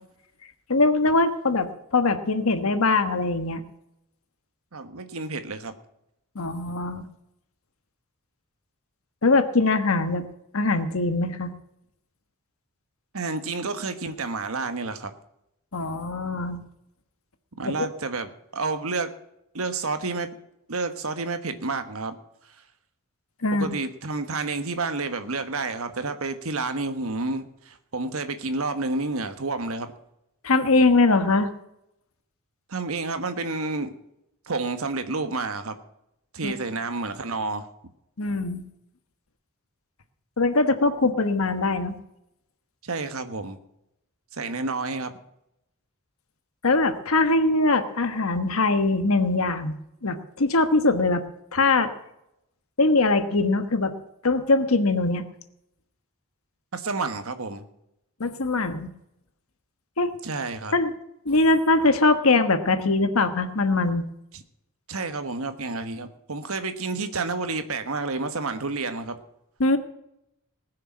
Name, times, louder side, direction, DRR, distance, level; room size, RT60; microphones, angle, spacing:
voice 1, 0.7-3.6 6.3-7.1 9.2-10.2 10.5-11.5 15.7-16.6 17.6-17.7 23.4-23.7 30.4-31.5 36.4-36.5 38.2-38.7 40.4-41.9 46.6-49.7 50.0-51.2 51.5-51.9 52.8-53.9 54.2-55.2 58.2-58.9 60.0-60.1 60.7-60.9 61.2-64.1 69.6-69.8, left 3 dB, 80° left, 9 dB, 1.3 m, -22 dB
voice 2, 4.7-5.7 13.1-15.1 17.6-19.1 19.5-20.3 20.7-22.2 23.5-29.9 32.7-33.9 34.5-35.8 36.3-37.7 42.8-43.6 44.3-45.1 56.7-57.7 60.2-60.7 64.3-64.4 64.9-69.2, right 3 dB, 80° right, 9 dB, 1.3 m, -30 dB
19.5 x 6.7 x 6.4 m, 0.82 s
head